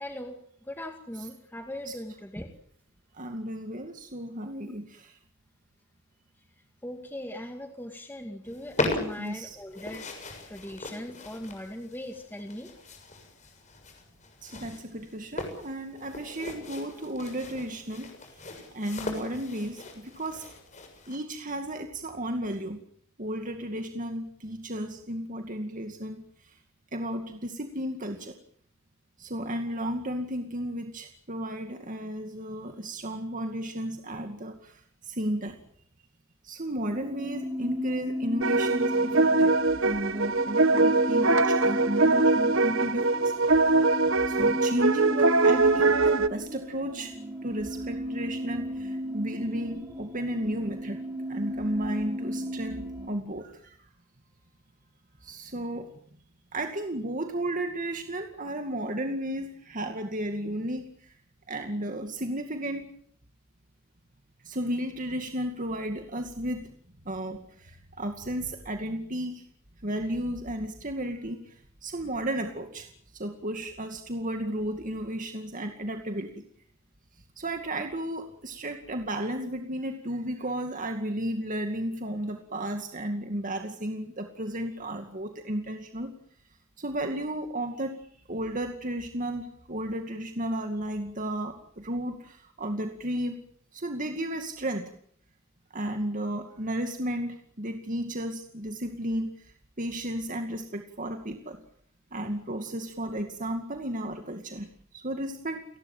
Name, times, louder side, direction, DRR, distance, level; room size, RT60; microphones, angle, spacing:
voice 1, 0.0-2.5 6.8-12.7, left 1 dB, 10° left, 4 dB, 2.2 m, -40 dB
voice 2, 3.1-5.2 9.2-9.6 14.4-20.4 21.1-22.8 23.2-26.6 26.9-28.3 29.2-35.6 36.4-43.3 44.3-47.2 47.4-51.0 51.3-53.8 55.2-55.9 56.5-61.1 61.5-62.9 64.4-66.7 67.1-69.4 69.8-76.4 77.4-86.1 86.8-88.0 88.3-93.4 93.7-94.9 95.7-101.6 102.1-104.7 104.9-105.6, right 1 dB, 40° right, 5 dB, 2.3 m, -33 dB
sound 1, 8.4-21.2, left 2 dB, 35° left, 6.9 m, -38 dB
sound 2, 36.9-53.1, left 1 dB, 10° right, 6.7 m, -35 dB
sound 3, 38.4-46.3, right 3 dB, 70° right, 1.4 m, -22 dB
29.5 x 19.5 x 7.5 m, 0.64 s
head